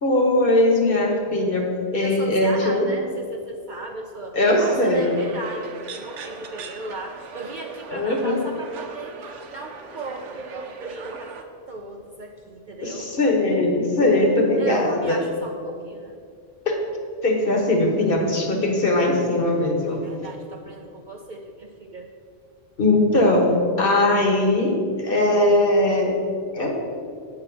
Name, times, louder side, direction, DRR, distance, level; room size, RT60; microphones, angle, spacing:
voice 1, 0.0-1.7 1.9-2.9 4.3-5.1 7.9-8.4 12.8-15.2 16.7-16.8 17.2-20.0 22.8-26.2 26.5-26.8, left 1 dB, 50° left, 1 dB, 1.3 m, -20 dB
voice 2, 2.0-11.4 11.7-13.1 14.6-16.2 19.9-22.1, right 3 dB, 55° right, 1 dB, 0.6 m, -36 dB
sound 1, 4.4-11.4, right 5 dB, 80° right, 1.1 m, -40 dB
8.3 x 3.9 x 6.9 m, 2.2 s
omnidirectional pair, 1.2 m